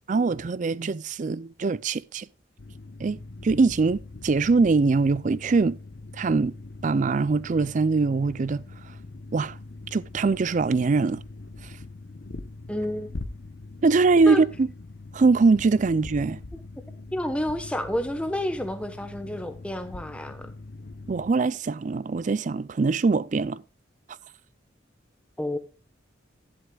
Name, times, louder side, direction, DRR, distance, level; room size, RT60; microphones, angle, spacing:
voice 1, 0.1-2.3 3.0-3.2 3.4-5.8 6.2-6.5 6.8-8.6 9.3-9.5 9.9-11.2 13.8-14.7 15.1-16.4 21.1-23.6, right 4 dB, 40° right, 0.4 m, -22 dB
sound 1, 2.6-21.3, left 2 dB, 60° left, 0.7 m, -42 dB
voice 2, 12.7-13.3 14.2-14.4 17.1-20.5 25.4-25.6, left 1 dB, 5° left, 1.0 m, -30 dB
11.5 x 11.0 x 2.3 m
head